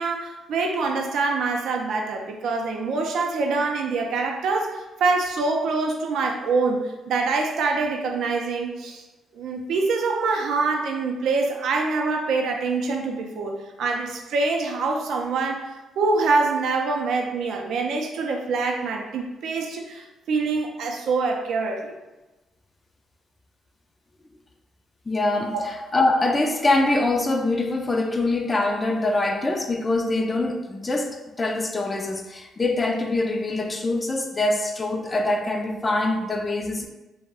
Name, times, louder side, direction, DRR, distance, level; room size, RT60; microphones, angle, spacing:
voice 1, 0.0-9.0 9.3-15.7 16.0-21.9 25.5-25.6, right 3 dB, 75° right, 2 dB, 0.4 m, -25 dB
voice 2, 25.1-36.9, left 2 dB, 25° left, 4 dB, 0.3 m, -24 dB
2.4 x 2.1 x 3.4 m, 1.1 s
cardioid pair, 90°, 0 cm